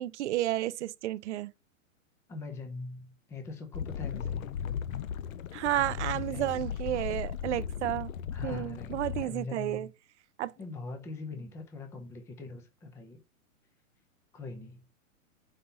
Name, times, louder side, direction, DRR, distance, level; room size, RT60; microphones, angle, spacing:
voice 1, 0.0-1.5 5.5-8.1 8.4-9.9 10.4-10.5, right 13 dB, 60° right, 0.5 m, -31 dB
voice 2, 2.3-4.4 6.0-6.5 8.3-9.9 10.6-13.2 14.3-14.8, left 3 dB, 5° left, 0.5 m, -42 dB
sound 1, 3.7-9.3, left 8 dB, 75° left, 0.7 m, -36 dB
5.5 x 4.1 x 5.5 m
hypercardioid pair, 145°, 41 cm